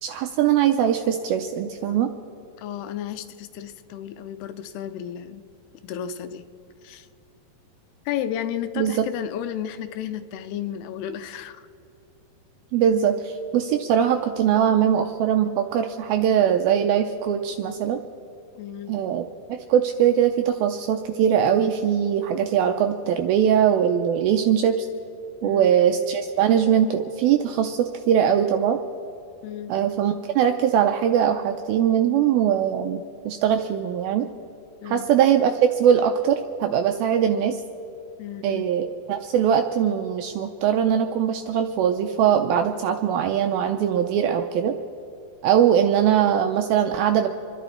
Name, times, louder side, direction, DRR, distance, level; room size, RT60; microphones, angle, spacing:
voice 1, 0.0-2.1 8.8-9.1 12.7-18.0 18.9-24.9 25.4-28.8 29.7-34.3 34.9-37.6 38.4-44.8 45.4-47.3, right 9 dB, 85° right, 6 dB, 2.2 m, -21 dB
voice 2, 2.6-5.4 5.7-6.5 6.8-7.1 8.1-11.7 18.5-19.0 25.4-25.7 29.4-29.7 34.8-35.1 38.2-38.6, left 10 dB, 80° left, 10 dB, 2.6 m, -33 dB
27.5 x 11.0 x 4.3 m, 2.9 s
omnidirectional pair, 4.9 m